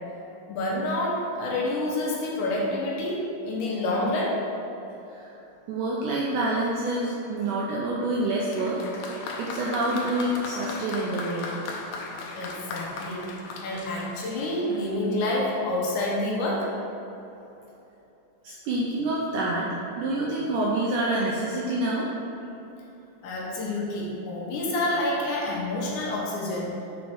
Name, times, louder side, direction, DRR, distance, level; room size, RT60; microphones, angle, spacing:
voice 1, 0.5-4.4 12.4-13.3 13.6-16.7 23.2-26.7, left 1 dB, 70° left, -4 dB, 2.1 m, -28 dB
voice 2, 5.7-8.8 9.1-11.5 18.4-19.7 20.0-22.1, right 2 dB, 85° right, -4 dB, 1.8 m, -27 dB
Applause, 8.5-15.0, left 3 dB, 90° left, 1.7 m, -37 dB
5.4 x 5.3 x 4.5 m, 3.0 s
omnidirectional pair, 4.3 m